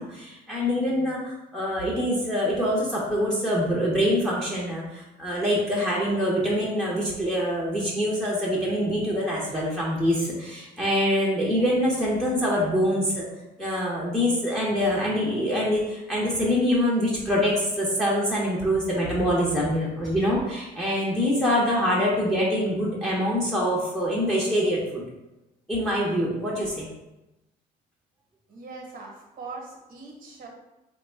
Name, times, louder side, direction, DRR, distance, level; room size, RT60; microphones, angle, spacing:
voice 1, 0.0-13.2 13.6-25.0 25.7-26.9, equal, 5° left, -6 dB, 0.8 m, -25 dB
voice 2, 28.5-30.5, right 3 dB, 55° right, 0 dB, 1.1 m, -41 dB
3.3 x 2.3 x 4.4 m, 0.96 s
cardioid pair, 110°, 17 cm